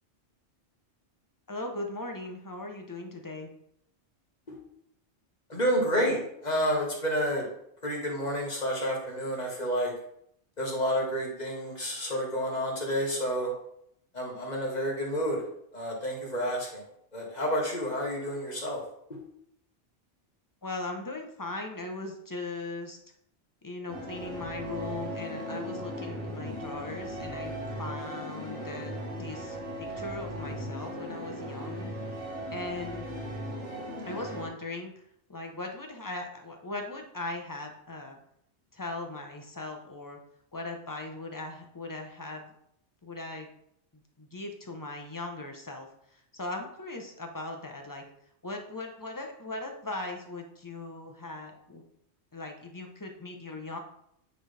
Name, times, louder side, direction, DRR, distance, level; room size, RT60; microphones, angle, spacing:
voice 1, 1.5-3.5 20.6-23.0 23.6-27.5 27.8-33.1 34.0-34.9 35.3-38.2 38.7-40.2 40.5-42.5 43.0-43.5 43.9-48.0 48.4-51.8 52.3-53.8, left 2 dB, 20° left, 3 dB, 0.7 m, -39 dB
voice 2, 5.5-7.5 7.8-9.9 10.6-13.5 14.1-15.4 15.7-16.8 17.1-18.8, equal, 40° left, -2 dB, 1.7 m, -29 dB
sound 1, 23.9-34.5, equal, 85° right, 1.9 m, -37 dB
9.0 x 3.9 x 3.4 m, 0.72 s
omnidirectional pair, 1.2 m